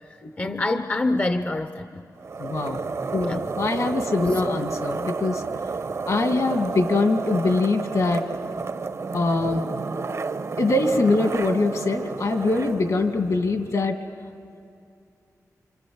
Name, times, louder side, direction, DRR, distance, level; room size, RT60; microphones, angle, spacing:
voice 1, 0.4-2.1 3.2-3.4 4.4-4.6, left 2 dB, 25° left, 9 dB, 0.7 m, -26 dB
sound 1, 2.2-13.7, right 4 dB, 55° right, 0.9 m, -31 dB
voice 2, 2.4-2.8 3.1-5.4 6.1-8.3 9.1-9.7 10.6-14.0, left 3 dB, 65° left, 5 dB, 2.3 m, -23 dB
28.5 x 26.5 x 7.8 m, 2.6 s
wide cardioid pair, 120°, 6 cm